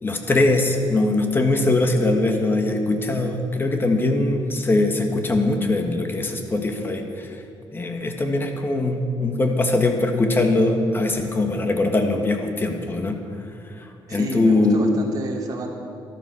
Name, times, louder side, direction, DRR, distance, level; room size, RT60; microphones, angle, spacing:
voice 1, 0.0-7.3 7.7-13.2 14.1-14.9, left 2 dB, 25° left, 4 dB, 1.6 m, -21 dB
voice 2, 14.1-15.7, right 2 dB, 45° right, 0 dB, 2.5 m, -31 dB
13.0 x 12.5 x 6.3 m, 2.5 s
cardioid pair, 120°, 9 cm